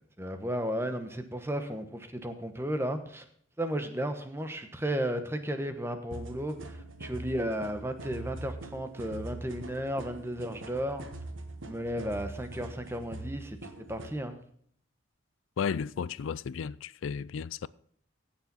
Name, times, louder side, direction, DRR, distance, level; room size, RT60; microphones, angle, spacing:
voice 1, 0.2-3.2 3.6-11.1 11.6-13.6 13.9-14.4, equal, 10° right, 1.0 m, -34 dB
sound 1, 6.1-14.2, right 2 dB, 80° right, 1.5 m, -43 dB
voice 2, 15.6-17.7, left 6 dB, 75° left, 0.4 m, -33 dB
15.5 x 7.2 x 4.1 m
head